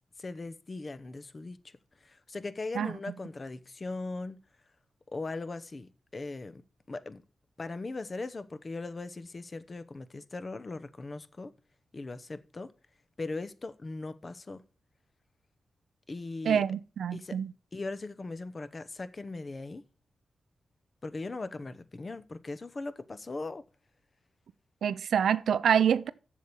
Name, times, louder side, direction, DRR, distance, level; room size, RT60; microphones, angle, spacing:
voice 1, 0.2-1.6 2.0-4.4 5.1-6.6 6.9-7.2 7.6-11.5 11.9-12.7 13.2-14.6 16.1-16.6 17.1-17.4 17.7-19.8 21.0-23.6, left 3 dB, 35° left, 0.8 m, -39 dB
voice 2, 16.5-17.5 24.8-26.1, right 8 dB, 85° right, 0.4 m, -26 dB
7.5 x 6.8 x 7.0 m
cardioid pair, 85°, 0 cm